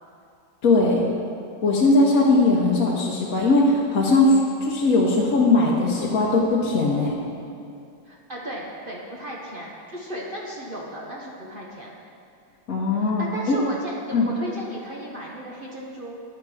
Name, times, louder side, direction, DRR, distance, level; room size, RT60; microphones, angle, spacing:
voice 1, 0.6-1.0 1.6-7.1 12.7-13.6 14.1-14.3, left 2 dB, 55° left, -4 dB, 1.2 m, -19 dB
voice 2, 8.0-12.0 12.9-16.3, right 1 dB, 45° right, -3 dB, 0.7 m, -35 dB
9.7 x 5.9 x 4.7 m, 2.5 s
omnidirectional pair, 2.0 m